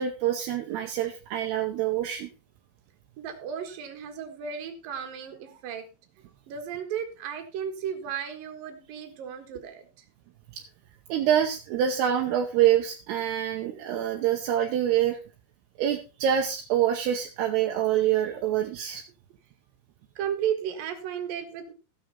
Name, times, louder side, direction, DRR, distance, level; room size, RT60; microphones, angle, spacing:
voice 1, 0.0-2.3 11.1-15.2 15.8-19.0, right 10 dB, 75° right, 3 dB, 2.8 m, -26 dB
voice 2, 3.2-5.9 6.2-10.0 20.2-21.7, right 8 dB, 60° right, 5 dB, 3.1 m, -34 dB
15.5 x 6.4 x 4.2 m, 0.32 s
omnidirectional pair, 5.0 m